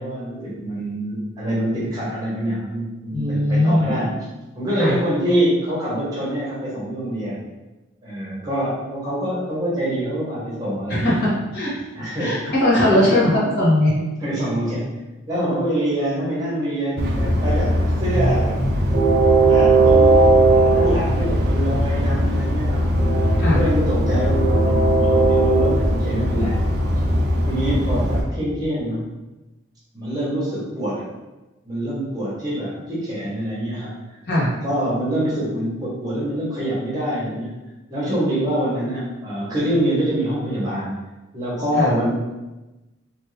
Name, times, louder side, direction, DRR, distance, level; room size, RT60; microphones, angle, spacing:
voice 1, 0.0-4.3 4.5-7.4 8.0-11.3 11.9-12.5 12.8-13.1 14.2-14.9 15.3-18.6 19.4-23.2 23.5-26.6 27.5-29.1 29.9-31.1 31.6-33.9 34.4-37.6 37.9-40.9 41.3-42.1, right 1 dB, 20° right, -8 dB, 1.0 m, -25 dB
voice 2, 3.1-3.9 4.8-5.0 10.9-11.7 12.2-13.9 23.4-23.6 34.3-34.5 41.7-41.9, left 1 dB, 50° left, -8 dB, 1.2 m, -19 dB
Train, 17.0-28.2, right 1 dB, 50° right, 0.5 m, -18 dB
3.0 x 2.6 x 3.1 m, 1.0 s
head